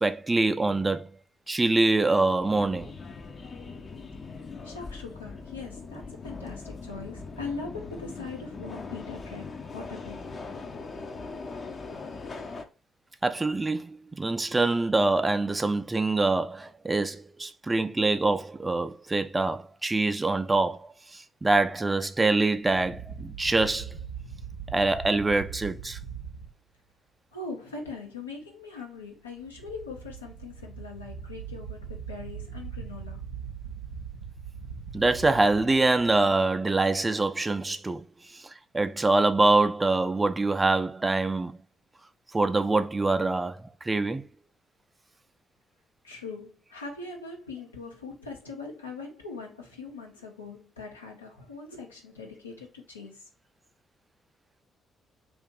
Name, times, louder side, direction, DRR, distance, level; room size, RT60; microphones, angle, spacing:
voice 1, 0.0-1.1 1.5-2.9 13.2-24.0 24.7-26.0 34.9-41.6 42.3-44.3, right 2 dB, 25° right, 0.4 m, -25 dB
Subway metro underground, 2.4-12.6, left 4 dB, 40° left, 0.5 m, -40 dB
voice 2, 4.6-10.3 27.3-33.2 46.0-53.2, left 4 dB, 85° left, 0.6 m, -41 dB
sound 1, 22.6-26.5 29.3-36.6, right 6 dB, 85° right, 0.5 m, -41 dB
2.6 x 2.5 x 3.7 m
figure-of-eight pair, 40°, 0 cm